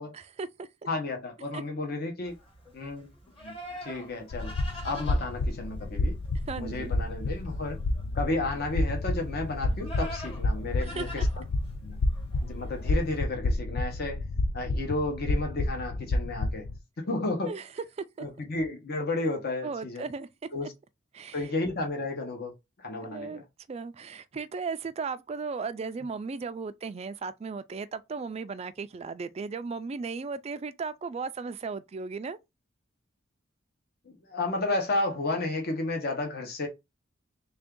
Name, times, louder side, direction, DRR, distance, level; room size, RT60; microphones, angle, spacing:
voice 1, 0.1-0.7 1.5-1.6 6.5-6.9 11.0-11.1 17.5-17.7 18.0-18.3 19.6-20.3 21.1-21.4 23.1-23.4 23.7-32.4, right 4 dB, 30° right, 0.3 m, -36 dB
voice 2, 0.9-2.4 2.7-3.1 3.4-3.5 3.8-4.5 4.8-6.1 6.6-7.8 8.1-11.3 11.8-12.0 12.4-14.2 14.5-16.6 17.0-17.6 18.2-20.0 20.5-20.7 21.3-22.5 22.8-23.4 34.3-36.7, left 2 dB, 50° left, 0.9 m, -32 dB
Livestock farm animals working animals, 2.3-13.2, equal, 30° left, 1.3 m, -46 dB
sound 1, 4.3-16.8, left 2 dB, 80° left, 0.4 m, -30 dB
3.3 x 2.6 x 3.6 m
head